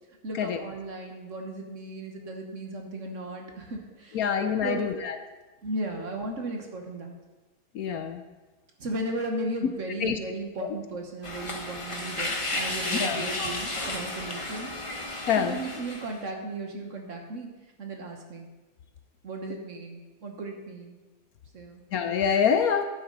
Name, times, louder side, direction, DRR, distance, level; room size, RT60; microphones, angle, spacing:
voice 1, 0.2-4.3 4.6-4.9 5.6-7.2 8.8-17.5 17.8-18.5 19.2-21.0 21.5-21.8, right 2 dB, 50° right, 2 dB, 1.5 m, -36 dB
voice 2, 4.1-5.2 7.7-8.2 10.0-10.2 12.9-13.2 15.3-15.6 21.9-22.8, left 7 dB, 65° left, 8 dB, 1.1 m, -25 dB
sound 1, 11.2-16.2, left 2 dB, 20° left, 1.1 m, -33 dB
11.5 x 9.3 x 3.9 m, 1.2 s
omnidirectional pair, 1.8 m